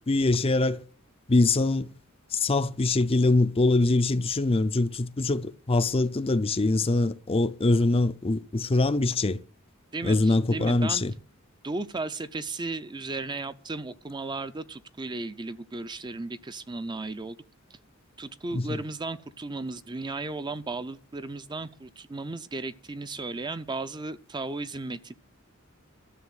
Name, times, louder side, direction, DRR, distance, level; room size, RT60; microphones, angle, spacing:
voice 1, 0.1-0.8 1.3-1.9 2.3-9.4 10.0-11.1 18.5-18.8, left 2 dB, 30° left, 0.5 m, -23 dB
voice 2, 9.9-11.0 11.6-17.4 18.2-25.1, right 3 dB, 20° right, 0.6 m, -35 dB
12.5 x 6.9 x 9.1 m
head